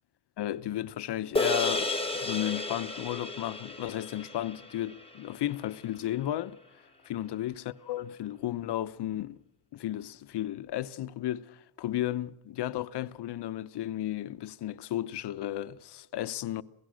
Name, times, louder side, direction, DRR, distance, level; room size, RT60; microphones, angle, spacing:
voice 1, 0.4-6.6 7.0-9.4 9.7-16.6, left 13 dB, 55° left, 0.9 m, -34 dB
sound 1, 1.3-5.9, left 2 dB, 10° left, 1.2 m, -33 dB
27.0 x 17.5 x 6.4 m
cardioid pair, 150°, 49 cm